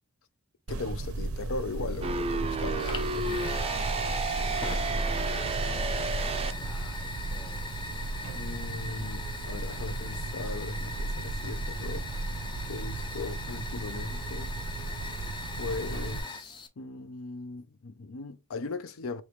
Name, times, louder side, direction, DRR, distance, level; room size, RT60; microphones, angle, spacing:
voice 1, 0.7-3.6 8.3-12.1 12.6-14.5 15.6-19.2, left 3 dB, 75° left, 0.6 m, -38 dB
sound 1, 0.7-16.2, right 2 dB, 80° right, 0.5 m, -35 dB
sound 2, 2.0-6.5, right 3 dB, 30° right, 0.4 m, -32 dB
Fire, 2.8-16.7, left 3 dB, 20° left, 0.5 m, -41 dB
voice 2, 4.4-7.7 8.9-9.1, right 1 dB, ahead, 1.6 m, -52 dB
4.9 x 2.9 x 3.1 m
head